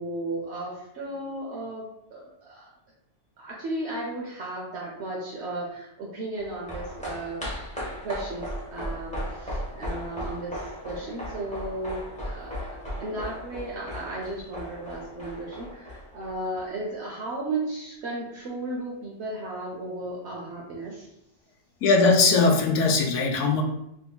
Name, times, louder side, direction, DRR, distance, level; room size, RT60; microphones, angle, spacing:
voice 1, 0.0-2.7 3.4-21.1, right 2 dB, 70° right, -3 dB, 0.9 m, -35 dB
sound 1, 6.3-16.9 17.2-17.3, equal, 5° left, 0.8 m, -37 dB
voice 2, 21.8-23.6, left 4 dB, 90° left, 3 dB, 0.9 m, -20 dB
3.6 x 2.8 x 2.2 m, 0.82 s
omnidirectional pair, 1.2 m